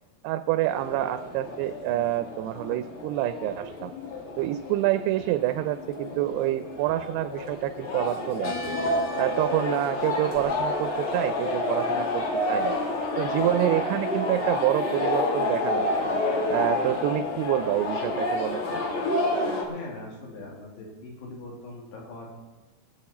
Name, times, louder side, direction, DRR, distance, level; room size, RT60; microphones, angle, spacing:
voice 1, 0.2-3.9 4.4-8.8 9.2-12.8 13.2-16.1 16.5-18.8, right 14 dB, 85° right, 10 dB, 2.6 m, -27 dB
sound 1, 0.6-19.6, left 2 dB, 55° left, 1.6 m, -29 dB
voice 2, 19.7-22.3, left 2 dB, 75° left, -1 dB, 4.4 m, -41 dB
21.5 x 8.3 x 4.2 m, 1.2 s
omnidirectional pair, 4.8 m